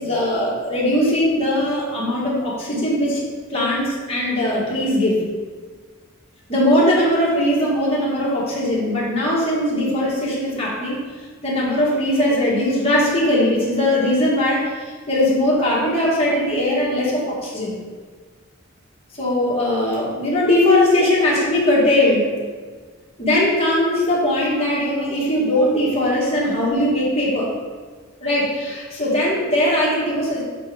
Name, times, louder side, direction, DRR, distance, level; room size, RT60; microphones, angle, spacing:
voice 1, 0.0-3.3 3.5-5.2 6.5-11.0 11.4-17.7 19.2-22.3 23.2-27.5 28.2-30.4, left 1 dB, 30° left, -6 dB, 1.9 m, -20 dB
6.2 x 4.4 x 5.0 m, 1.5 s
head